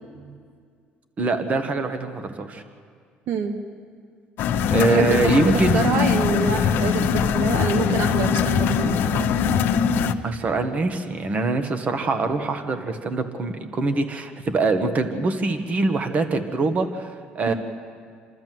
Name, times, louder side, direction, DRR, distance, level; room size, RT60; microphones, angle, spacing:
voice 1, 1.2-2.6 4.7-5.9 10.2-17.5, right 3 dB, 40° right, 7 dB, 1.7 m, -24 dB
voice 2, 3.3-3.6 4.9-9.3 17.5-17.6, right 5 dB, 65° right, 5 dB, 1.3 m, -26 dB
sound 1, 4.4-10.1, left 7 dB, 70° left, 0.9 m, -21 dB
28.0 x 13.0 x 7.8 m, 2.1 s
cardioid pair, 110°, 4 cm